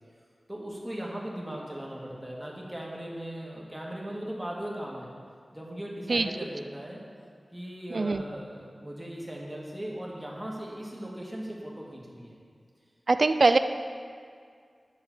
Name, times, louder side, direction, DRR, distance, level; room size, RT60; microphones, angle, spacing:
voice 1, 0.5-5.1 5.5-7.0 7.5-12.4, right 1 dB, 10° right, -3 dB, 1.7 m, -38 dB
voice 2, 7.9-8.2 13.1-13.6, right 3 dB, 60° right, 10 dB, 0.3 m, -22 dB
9.8 x 3.8 x 7.0 m, 2.1 s
wide cardioid pair, 80°, 0 cm